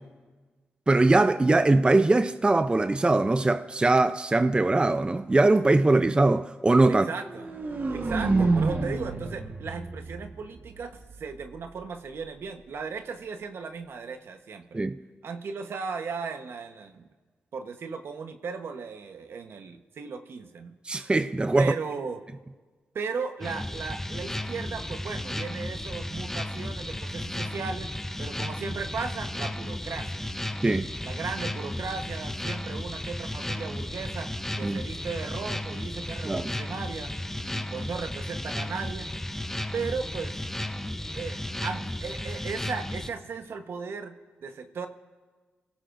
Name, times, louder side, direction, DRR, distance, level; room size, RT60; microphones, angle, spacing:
voice 1, 0.9-7.1 14.7-15.0 20.9-21.7 30.6-30.9 34.6-34.8 36.2-36.5, right 2 dB, 25° right, 0.5 m, -21 dB
voice 2, 6.9-7.6 7.9-14.8 15.2-17.1 17.5-20.8 21.6-22.2 22.9-30.4 31.0-37.1 37.5-39.1 39.7-40.4 41.1-44.9, right 5 dB, 70° right, 1.1 m, -36 dB
sound 1, 7.2-11.2, right 3 dB, 50° right, 1.4 m, -28 dB
sound 2, 23.4-43.1, left 1 dB, 10° left, 0.8 m, -34 dB
28.0 x 16.5 x 2.6 m
cardioid pair, 55°, 4 cm